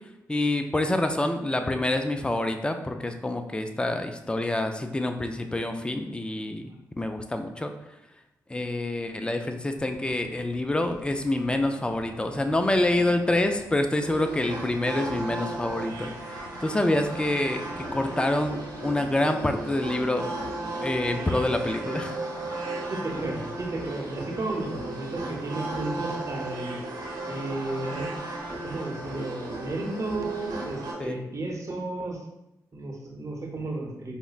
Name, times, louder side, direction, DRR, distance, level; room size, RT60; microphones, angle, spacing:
voice 1, 0.3-6.7 7.0-7.7 8.5-20.3 20.8-22.2 31.0-31.2, left 1 dB, 15° left, 6 dB, 0.4 m, -27 dB
sound 1, 9.7-13.9 14.2-19.6, left 2 dB, 85° left, 0.5 m, -47 dB
sound 2, 14.0-30.9, right 2 dB, 70° right, 1.0 m, -35 dB
voice 2, 22.9-26.8 27.3-28.2 28.6-32.2 32.7-34.2, right 2 dB, 45° right, 1 dB, 0.8 m, -33 dB
4.9 x 2.1 x 2.4 m, 0.88 s
supercardioid pair, 50°, 7 cm